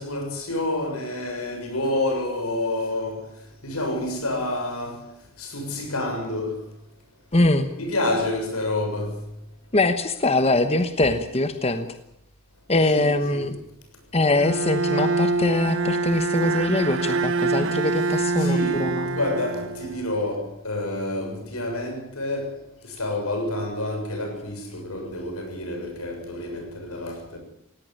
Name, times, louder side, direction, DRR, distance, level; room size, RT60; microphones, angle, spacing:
voice 1, 0.0-3.2 3.6-5.0 5.4-6.6 7.8-9.1 12.9-13.5 18.1-22.5 23.0-27.4, left 1 dB, 85° left, 6.9 m, -28 dB
voice 2, 7.3-7.7 9.7-11.9 12.7-13.6 14.1-19.2, left 2 dB, 30° left, 1.1 m, -22 dB
Bowed string instrument, 14.4-20.3, right 3 dB, 60° right, 1.2 m, -25 dB
18.5 x 17.5 x 9.7 m
head